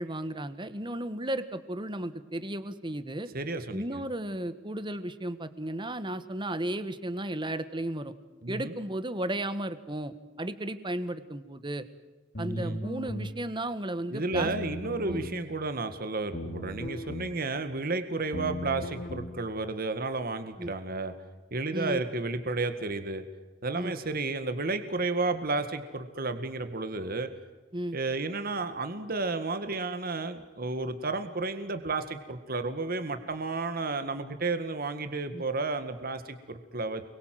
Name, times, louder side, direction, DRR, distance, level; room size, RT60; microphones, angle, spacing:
voice 1, 0.0-3.3 3.7-8.1 8.5-11.8 12.4-14.5 15.0-15.2 20.6-20.7 21.7-22.0 23.8-23.9 27.7-28.0 35.3-35.4, right 1 dB, 25° right, 12 dB, 1.6 m, -34 dB
voice 2, 3.3-4.0 8.4-8.7 12.5-12.8 14.1-21.1 21.5-23.2 23.6-27.3 27.9-37.0, right 3 dB, 50° right, 8 dB, 1.9 m, -32 dB
sound 1, 12.4-13.3 14.3-15.3 16.3-17.3 18.3-19.3, equal, 55° left, 2.8 m, -37 dB
29.5 x 22.5 x 7.8 m, 1.2 s
head